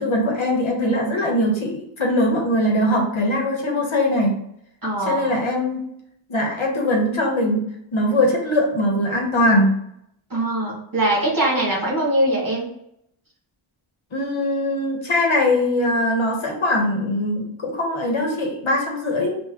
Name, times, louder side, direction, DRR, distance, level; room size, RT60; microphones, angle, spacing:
voice 1, 0.0-4.4 5.0-5.8 6.3-7.6 7.9-9.7 14.1-19.4, left 1 dB, 70° left, 0 dB, 1.0 m, -21 dB
voice 2, 4.8-5.3 10.3-12.7, right 1 dB, 40° right, -4 dB, 1.5 m, -22 dB
3.5 x 2.4 x 3.4 m, 0.74 s
wide cardioid pair, 55°, 49 cm